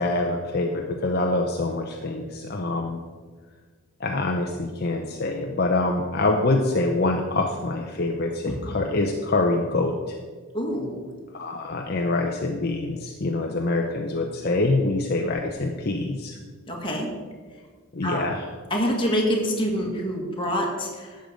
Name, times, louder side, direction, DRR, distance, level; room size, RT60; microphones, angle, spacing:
voice 1, 0.0-3.0 4.0-9.9 11.3-16.4 17.9-18.5, left 2 dB, 45° left, 2 dB, 0.7 m, -25 dB
voice 2, 10.5-11.0 16.7-17.1 18.0-18.3 18.7-21.2, equal, 20° left, -1 dB, 1.9 m, -26 dB
12.0 x 7.8 x 5.1 m, 1.5 s
head